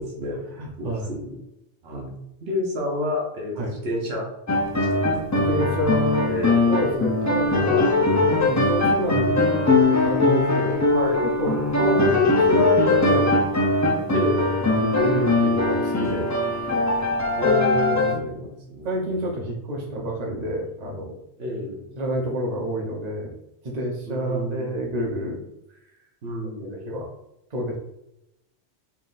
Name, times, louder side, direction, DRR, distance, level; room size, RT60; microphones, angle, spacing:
voice 1, 0.0-0.4 0.8-1.4 1.8-2.1 2.4-3.6 3.8-4.3 4.7-5.3 6.3-6.7 9.1-9.4 10.9-11.2 11.8-12.3 14.1-14.4 17.4-19.3 19.8-19.9 21.4-21.8 24.1-24.8 26.2-26.8, left 1 dB, 70° right, -1 dB, 1.2 m, -30 dB
voice 2, 0.5-1.1 3.6-3.7 5.3-6.3 6.7-9.3 9.9-10.9 11.2-13.4 14.7-16.3 17.9-18.3 18.8-21.1 22.0-23.3 23.6-25.5 26.6-27.1 27.5-27.8, equal, 40° right, -1 dB, 0.9 m, -28 dB
sound 1, 4.5-18.2, left 2 dB, 25° left, 0.4 m, -21 dB
4.5 x 3.7 x 2.5 m, 0.84 s
omnidirectional pair, 1.1 m